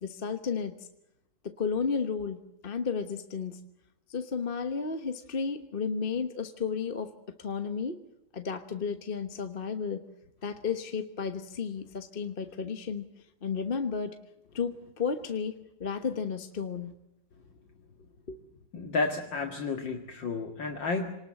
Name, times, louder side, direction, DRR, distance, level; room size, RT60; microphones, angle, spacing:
voice 1, 0.0-0.8 1.4-3.6 4.1-7.1 7.4-8.0 8.3-10.0 10.4-13.1 13.4-14.2 14.5-16.9 18.3-18.4, left 5 dB, 35° left, 8 dB, 1.0 m, -33 dB
voice 2, 18.7-21.1, left 3 dB, 60° left, 3 dB, 2.7 m, -31 dB
27.5 x 19.5 x 7.7 m, 0.86 s
omnidirectional pair, 2.4 m